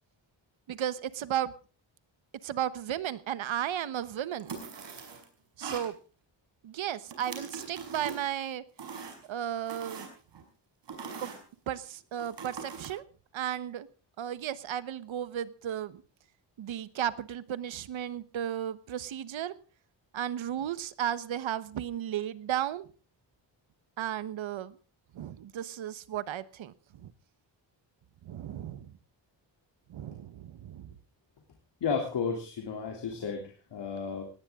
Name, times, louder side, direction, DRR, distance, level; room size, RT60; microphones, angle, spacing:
voice 1, 0.7-1.5 2.4-4.5 5.6-6.0 6.6-8.6 9.3-10.1 11.2-11.3 11.7-13.0 13.3-13.9 14.2-16.0 16.6-19.6 20.1-22.9 24.0-24.7 25.1-27.1 28.2-28.9 29.9-30.9, right 10 dB, 90° right, 15 dB, 1.2 m, -34 dB
sound 1, 4.4-5.2 5.6-5.9 7.1-8.3 8.8-9.3 9.7-10.4 10.9-11.4 12.2-12.9, right 5 dB, 65° right, 5.5 m, -41 dB
voice 2, 31.8-34.2, left 5 dB, 65° left, 1 dB, 3.2 m, -33 dB
19.0 x 18.0 x 3.7 m, 0.36 s
wide cardioid pair, 160°, 46 cm